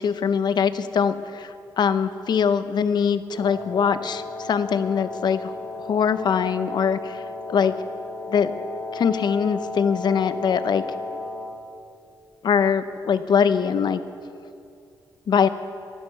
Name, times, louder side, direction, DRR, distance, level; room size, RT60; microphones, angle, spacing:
voice 1, 0.0-1.5 1.8-5.5 5.9-7.2 7.5-7.7 8.3-8.5 8.9-10.8 12.4-14.0 15.3-15.5, left 7 dB, 65° left, 12 dB, 0.7 m, -22 dB
Wind instrument woodwind instrument, 3.3-11.6, left 3 dB, 40° left, 3.7 m, -34 dB
15.5 x 12.0 x 5.8 m, 2.5 s
cardioid pair, 110°, 8 cm